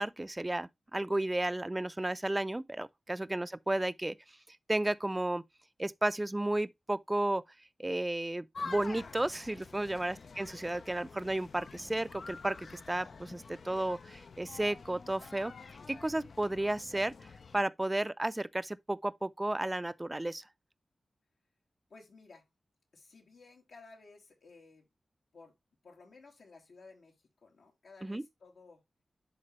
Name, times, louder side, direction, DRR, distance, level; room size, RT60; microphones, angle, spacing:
voice 1, 0.0-4.2 4.7-5.4 5.8-7.4 7.8-12.6 12.9-15.5 15.9-17.1 17.5-20.4 28.0-28.2, right 1 dB, 20° right, 0.5 m, -33 dB
sound 1, 8.5-17.6, left 4 dB, 70° left, 0.6 m, -48 dB
voice 2, 9.9-10.2 21.9-22.5 22.9-24.9 25.3-25.6 25.8-28.8, left 3 dB, 85° left, 2.6 m, -56 dB
11.0 x 3.8 x 3.1 m
cardioid pair, 60°, 0 cm